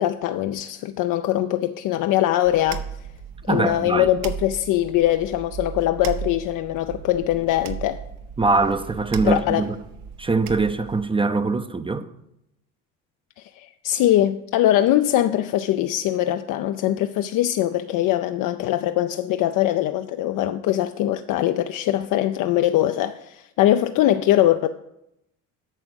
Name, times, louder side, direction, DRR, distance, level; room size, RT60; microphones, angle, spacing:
voice 1, 0.0-2.8 3.5-8.0 9.2-9.7 13.4-24.7, left 13 dB, 60° left, 0.5 m, -22 dB
sound 1, 2.4-11.0, right 8 dB, 65° right, 0.9 m, -36 dB
voice 2, 3.5-4.1 8.4-9.8 10.2-12.1, right 3 dB, 15° right, 0.5 m, -22 dB
9.0 x 5.9 x 6.3 m
supercardioid pair, 75°, 36 cm